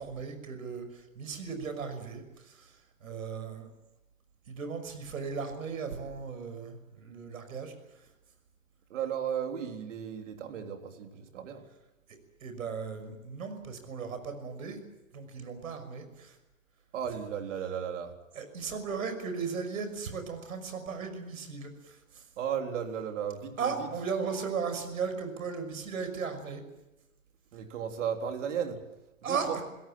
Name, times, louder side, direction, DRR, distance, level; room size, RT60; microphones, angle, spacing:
voice 1, 0.0-3.7 4.5-7.7 12.4-14.8 15.1-16.4 18.3-22.2 23.6-26.6 29.2-29.6, right 5 dB, 80° right, 8 dB, 6.0 m, -36 dB
voice 2, 8.9-11.6 16.9-18.1 22.4-23.9 27.5-28.8 29.2-29.6, right 8 dB, 60° right, 4 dB, 3.8 m, -35 dB
28.0 x 17.0 x 8.7 m, 0.98 s
hypercardioid pair, 145°, 41 cm